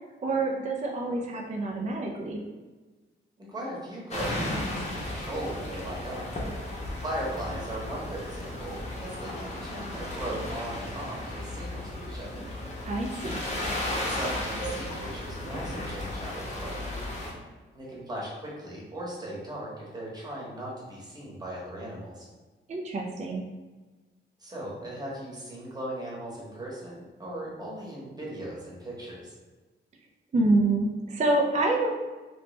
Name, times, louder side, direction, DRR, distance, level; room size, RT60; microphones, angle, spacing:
voice 1, 0.2-2.4 12.9-13.4 22.7-23.4 30.3-31.9, right 2 dB, 35° right, 0 dB, 0.4 m, -27 dB
voice 2, 3.4-6.3 7.0-12.4 14.0-16.8 17.7-22.3 24.4-29.4, right 1 dB, 20° right, -5 dB, 1.1 m, -38 dB
sound 1, 4.1-17.3, left 1 dB, 35° left, 0.8 m, -35 dB
3.2 x 2.9 x 3.2 m, 1.3 s
wide cardioid pair, 140°, 21 cm